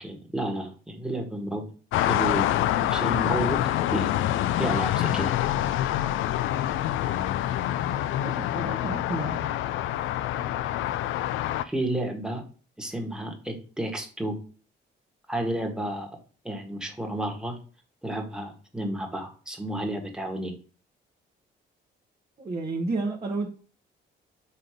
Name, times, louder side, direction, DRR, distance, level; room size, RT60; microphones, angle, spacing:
voice 1, 0.0-1.7 2.1-2.5 2.8-3.6 3.9-4.1 4.6-5.3 11.6-12.4 12.8-14.4 15.3-16.1 16.4-17.6 18.0-20.5, right 1 dB, 5° right, 2 dB, 1.6 m, -31 dB
sound 1, 1.9-11.6, left 12 dB, 85° left, 0.4 m, -26 dB
voice 2, 8.2-9.5 22.4-23.5, right 3 dB, 35° right, -2 dB, 1.2 m, -31 dB
5.5 x 3.7 x 5.0 m, 0.39 s
cardioid pair, 90°, 20 cm